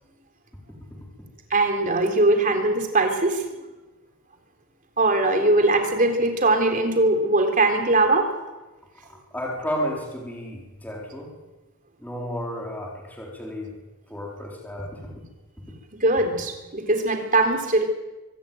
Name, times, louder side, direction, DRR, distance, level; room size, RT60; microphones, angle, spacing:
voice 1, 1.5-3.4 5.0-8.3 16.0-17.9, right 2 dB, 35° right, 5 dB, 3.7 m, -21 dB
voice 2, 9.3-11.3 12.0-13.7 14.1-15.1, equal, 10° left, -2 dB, 4.0 m, -32 dB
24.5 x 14.5 x 9.2 m, 1.1 s
head